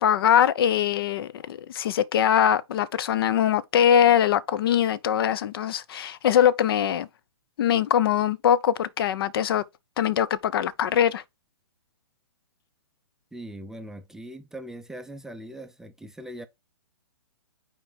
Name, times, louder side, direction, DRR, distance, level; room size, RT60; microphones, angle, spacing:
voice 1, 0.0-7.1 7.6-9.6 10.0-11.2, left 9 dB, 55° left, 0.5 m, -22 dB
voice 2, 13.3-16.5, right 1 dB, 5° right, 0.4 m, -40 dB
4.4 x 4.3 x 4.9 m
hypercardioid pair, 135°, 15 cm